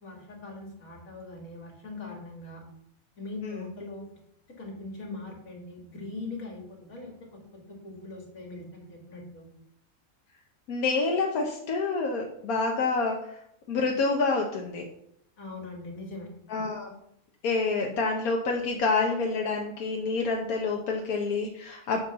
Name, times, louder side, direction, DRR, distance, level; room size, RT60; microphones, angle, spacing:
voice 1, 0.0-2.6 3.2-4.0 4.6-7.2 7.7-9.5 15.4-16.3, left 3 dB, 70° left, 0 dB, 2.8 m, -41 dB
voice 2, 10.7-13.4 13.7-14.9 16.5-17.0 17.4-22.0, left 3 dB, 90° left, 1 dB, 1.4 m, -28 dB
9.1 x 4.5 x 6.7 m, 0.72 s
omnidirectional pair, 1.5 m